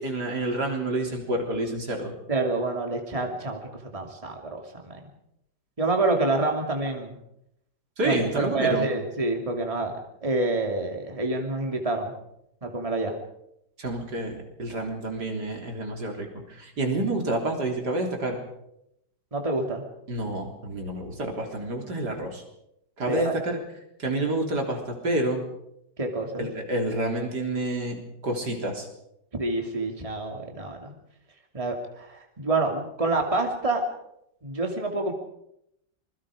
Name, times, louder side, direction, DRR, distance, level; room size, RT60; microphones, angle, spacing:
voice 1, 0.0-2.1 8.0-8.9 13.8-18.4 20.1-22.4 23.0-23.6 24.0-25.4 26.4-28.9, right 1 dB, 65° right, 2 dB, 4.2 m, -28 dB
voice 2, 2.3-5.1 5.8-7.1 8.0-12.1 12.6-13.1 19.3-19.8 23.1-23.3 26.0-26.5 29.4-30.9 31.5-33.8 34.4-35.1, right 2 dB, 20° right, 2 dB, 2.7 m, -27 dB
26.5 x 21.5 x 5.0 m, 0.79 s
omnidirectional pair, 1.9 m